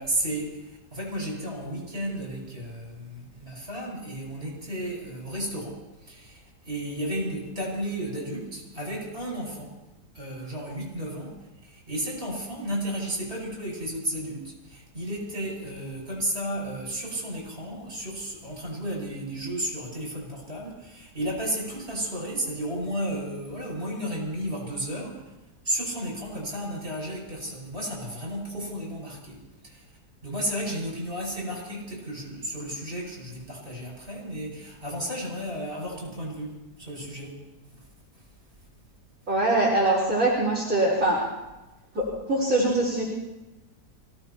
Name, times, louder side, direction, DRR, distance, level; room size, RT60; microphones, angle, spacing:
voice 1, 0.0-9.7 10.1-11.3 11.6-25.2 25.6-29.8 30.2-37.3 37.7-37.8, right 1 dB, 35° right, -3 dB, 6.8 m, -33 dB
voice 2, 39.3-41.2 41.9-43.0, right 2 dB, 55° right, -7 dB, 4.8 m, -23 dB
26.0 x 18.0 x 3.0 m, 1.0 s
omnidirectional pair, 1.8 m